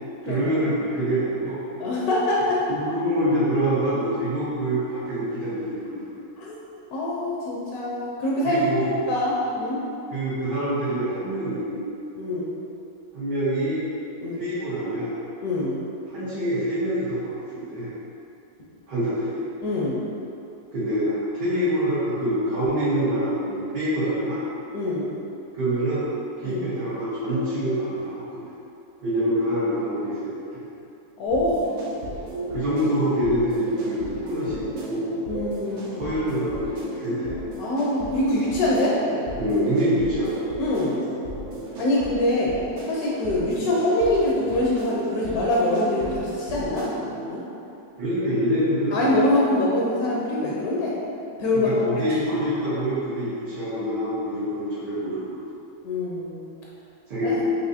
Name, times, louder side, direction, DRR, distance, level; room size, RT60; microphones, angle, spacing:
voice 1, 0.2-1.6 2.7-6.1 8.4-8.9 10.1-11.8 13.1-13.8 14.3-15.1 16.1-17.9 18.9-19.4 20.7-24.4 25.5-26.0 26.4-28.4 29.0-30.7 32.5-35.1 35.9-37.3 39.4-40.5 48.0-49.1 51.5-55.4 57.1-57.4, equal, 80° right, -15 dB, 1.7 m, -25 dB
voice 2, 1.8-2.6 6.4-6.6 6.9-8.6 9.1-9.8 12.2-12.5 14.2-14.5 15.4-15.7 19.6-20.0 24.7-25.1 26.4-26.7 31.2-31.7 35.3-36.0 37.6-38.9 40.6-41.0 41.8-42.5 42.8-46.9 47.3-47.4 48.9-50.9 51.4-51.8 55.8-56.5 57.2-57.3, left 1 dB, 70° left, -5 dB, 1.0 m, -24 dB
sound 1, 31.3-47.3, right 1 dB, 65° right, 0.8 m, -35 dB
4.7 x 2.6 x 2.7 m, 2.7 s
omnidirectional pair, 1.8 m